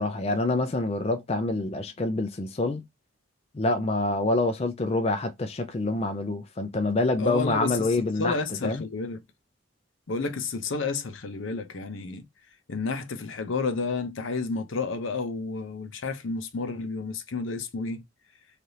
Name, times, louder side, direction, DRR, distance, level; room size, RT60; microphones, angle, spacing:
voice 1, 0.0-2.8 3.5-8.8, left 2 dB, 30° left, 0.4 m, -26 dB
voice 2, 7.2-9.2 10.1-12.3 12.7-18.0, left 4 dB, 70° left, 0.6 m, -31 dB
3.3 x 2.4 x 2.7 m
head